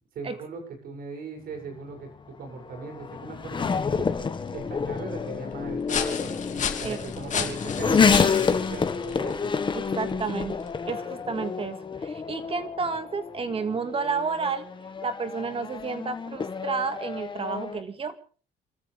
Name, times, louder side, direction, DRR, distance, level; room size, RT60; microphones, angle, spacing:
voice 1, 0.1-2.1 2.4-4.2 4.5-9.5, right 4 dB, 60° right, 4 dB, 7.2 m, -39 dB
Race car auto racing / Accelerating revving vroom, 1.5-17.8, left 5 dB, 30° left, 1.6 m, -29 dB
sound 1, 3.4-10.9, left 7 dB, 45° left, 2.7 m, -35 dB
voice 2, 9.7-14.7 15.0-18.1, right 5 dB, 35° right, 9 dB, 2.1 m, -31 dB
28.5 x 14.0 x 3.5 m, 0.39 s
cardioid pair, 110°, 17 cm